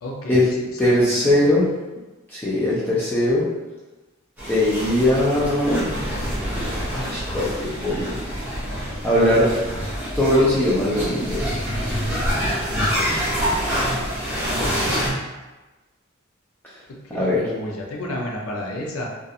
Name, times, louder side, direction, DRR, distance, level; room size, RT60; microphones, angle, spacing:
voice 1, 0.0-1.5 12.7-13.1 14.6-15.0 16.9-19.1, left 1 dB, 90° left, 0 dB, 0.5 m, -32 dB
voice 2, 0.8-1.7 2.3-3.5 4.5-5.9 6.9-8.2 9.0-9.5 10.1-11.5 17.1-17.4, left 1 dB, 10° left, -9 dB, 0.4 m, -20 dB
sound 1, 4.4-15.1, equal, 10° right, 0.8 m, -26 dB
2.4 x 2.3 x 2.7 m, 1.1 s
head